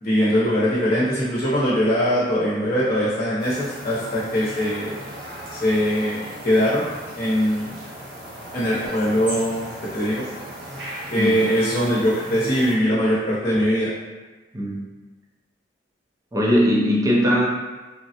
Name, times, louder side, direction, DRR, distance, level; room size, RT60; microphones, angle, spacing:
voice 1, 0.0-4.9 5.5-6.9 7.2-7.8 8.5-10.3 11.1-13.9, equal, 40° left, -8 dB, 0.7 m, -21 dB
sound 1, 3.4-12.7, equal, 85° right, 0.9 m, -37 dB
voice 2, 14.5-14.9 16.3-17.5, equal, 20° right, -4 dB, 0.4 m, -19 dB
3.3 x 2.0 x 2.8 m, 1.2 s
head